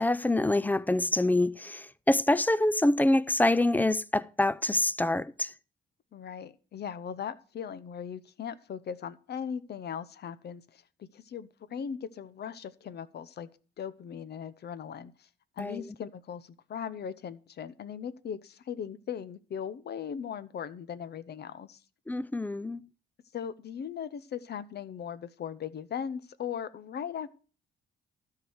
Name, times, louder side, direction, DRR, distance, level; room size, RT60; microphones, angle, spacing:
voice 1, 0.0-5.5 15.6-15.8 22.1-22.8, left 1 dB, 10° left, 0.4 m, -26 dB
voice 2, 6.1-10.8 11.1-13.5 13.8-15.1 15.6-21.8 23.3-27.3, left 8 dB, 55° left, 0.8 m, -38 dB
12.5 x 4.8 x 7.9 m
cardioid pair, 90°, 20 cm